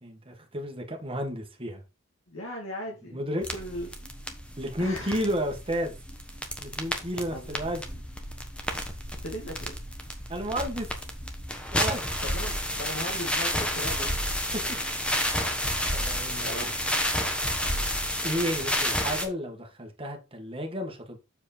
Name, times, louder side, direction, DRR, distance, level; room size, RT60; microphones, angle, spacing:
voice 1, 0.0-1.8 3.1-3.5 4.6-5.9 6.6-8.0 10.3-10.9 11.7-12.2 14.5-14.8 15.9-16.7 18.2-21.2, equal, 25° right, 1.8 m, -32 dB
voice 2, 2.3-3.9 4.8-5.3 7.3-7.6 9.2-9.8 10.0-10.1 12.2-14.2 16.4-16.9 17.7-17.9, left 1 dB, 70° left, 2.1 m, -38 dB
sound 1, 3.4-19.2, equal, 5° left, 1.2 m, -31 dB
7.2 x 4.9 x 4.4 m
head